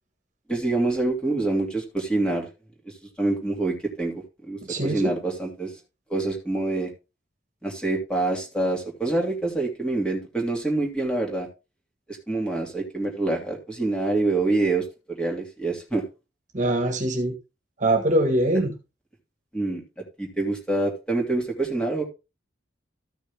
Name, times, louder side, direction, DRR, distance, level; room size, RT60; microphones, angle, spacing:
voice 1, 0.5-2.5 3.2-4.1 4.5-5.7 6.1-6.9 7.6-11.5 12.1-16.0 19.5-22.0, right 2 dB, 5° left, 2.6 m, -26 dB
voice 2, 4.6-5.1 16.5-17.4 17.8-18.7, right 1 dB, 40° right, 1.8 m, -23 dB
14.0 x 6.1 x 3.6 m
head